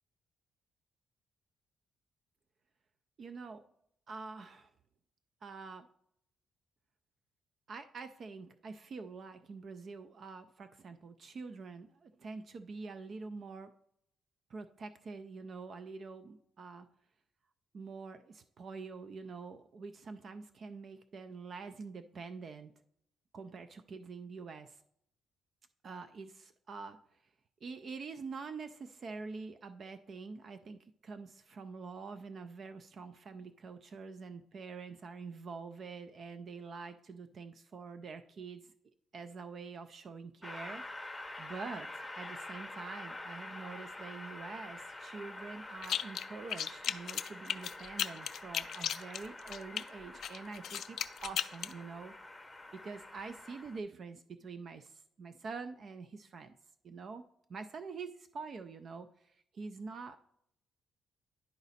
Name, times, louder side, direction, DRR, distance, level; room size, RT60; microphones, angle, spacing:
voice 1, 3.2-3.6 4.1-4.7 5.4-5.9 7.7-13.7 14.5-16.9 17.7-22.7 23.3-24.8 25.8-27.0 27.6-38.7 39.1-52.1 52.7-56.6 56.8-60.2, right 4 dB, 50° right, 9 dB, 0.4 m, -46 dB
Train, 40.4-53.8, left 2 dB, 10° left, 0.7 m, -47 dB
sound 1, 45.8-46.2 46.5-49.8 50.2-51.7, left 9 dB, 65° left, 0.3 m, -35 dB
10.5 x 4.0 x 4.1 m, 0.74 s
cardioid pair, 90°, 0 cm